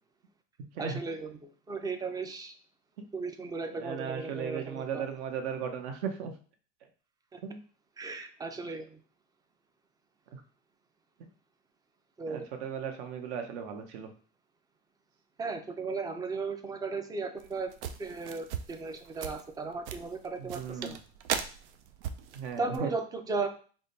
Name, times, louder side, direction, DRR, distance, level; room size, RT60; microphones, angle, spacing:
voice 1, 0.8-2.5 3.1-5.0 7.3-7.4 8.0-9.0 12.2-12.4 15.4-17.7 18.0-21.0 22.6-23.5, right 4 dB, 10° right, 7 dB, 0.3 m, -36 dB
voice 2, 3.7-6.3 7.4-7.6 10.3-10.4 12.3-14.1 20.4-20.9 22.3-22.9, right 7 dB, 70° right, 5 dB, 0.9 m, -36 dB
sound 1, 17.4-22.8, right 8 dB, 90° right, 0.5 m, -38 dB
3.6 x 2.2 x 4.0 m, 0.40 s
supercardioid pair, 115°, 33 cm